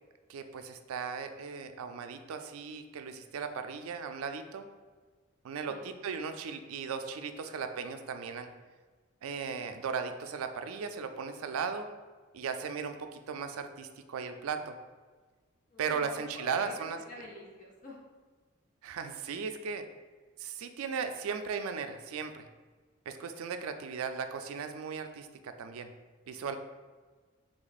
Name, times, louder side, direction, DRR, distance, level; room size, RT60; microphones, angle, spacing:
voice 1, 0.3-4.7 5.4-8.5 9.2-11.9 12.3-14.7 15.8-17.0 18.8-19.8 20.4-22.5 23.1-25.9 26.3-26.6, right 6 dB, 90° right, 7 dB, 0.4 m, -37 dB
voice 2, 15.7-18.0, left 1 dB, 40° left, -3 dB, 0.6 m, -48 dB
3.3 x 3.0 x 4.1 m, 1.4 s
head